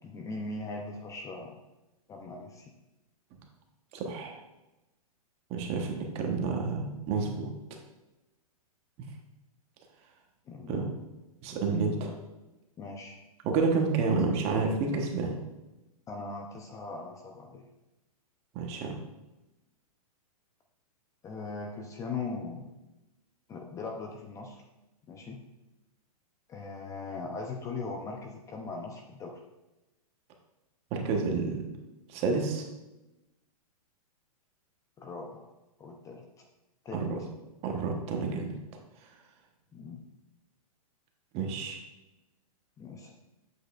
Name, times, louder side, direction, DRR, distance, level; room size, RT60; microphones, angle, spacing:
voice 1, 0.0-1.6 2.1-2.7 10.5-11.0 12.0-12.1 12.8-13.1 16.1-17.6 21.2-22.7 23.5-24.6 25.1-25.4 26.5-29.4 35.0-35.5 35.8-36.2 36.8-37.1 39.7-40.0 42.8-43.1, left 3 dB, 15° left, 2 dB, 0.5 m, -39 dB
voice 2, 3.9-4.4 5.5-7.5 10.7-10.9 11.4-12.1 13.4-15.4 18.5-19.0 30.9-31.6 32.1-32.6 36.9-37.2 37.6-38.5 41.3-41.8, right 4 dB, 30° right, 2 dB, 1.1 m, -29 dB
7.9 x 6.2 x 2.4 m, 1.0 s
hypercardioid pair, 135°, 19 cm